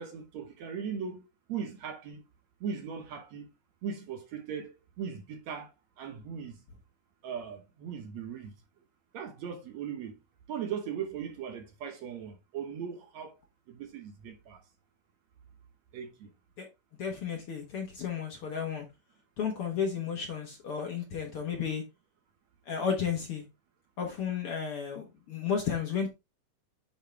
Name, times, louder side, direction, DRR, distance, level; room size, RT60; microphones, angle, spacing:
voice 1, 0.0-2.2 2.6-3.5 3.8-6.6 7.2-8.5 9.1-10.2 10.5-13.4 13.7-14.6 15.9-16.3, right 7 dB, 65° right, 2.1 m, -39 dB
voice 2, 17.0-18.8 19.4-21.8 22.7-23.4 24.0-26.1, left 7 dB, 55° left, 1.7 m, -33 dB
9.1 x 4.8 x 3.3 m
omnidirectional pair, 3.8 m